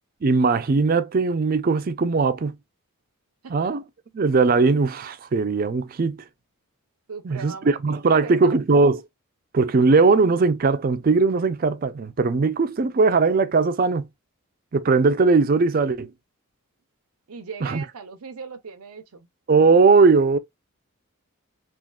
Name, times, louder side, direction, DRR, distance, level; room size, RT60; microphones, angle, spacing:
voice 1, 0.2-2.6 3.5-3.8 4.1-6.3 7.2-9.0 9.5-14.1 14.7-16.1 17.6-17.8 19.5-20.4, right 4 dB, 40° right, 0.4 m, -19 dB
voice 2, 7.1-8.6 17.3-19.3, right 5 dB, 85° right, 0.7 m, -38 dB
3.6 x 2.4 x 2.3 m
head